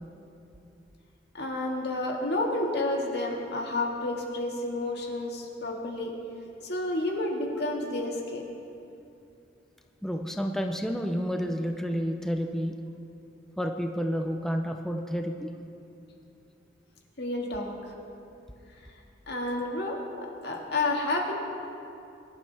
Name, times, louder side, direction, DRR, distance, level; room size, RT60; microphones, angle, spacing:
voice 1, 1.3-6.1 6.6-8.5 17.2-17.7 19.3-20.0 20.4-21.3, left 2 dB, 65° left, 0 dB, 1.9 m, -30 dB
voice 2, 10.0-12.7 13.6-15.5, equal, 5° left, 3 dB, 0.6 m, -30 dB
22.5 x 11.5 x 3.4 m, 2.6 s
head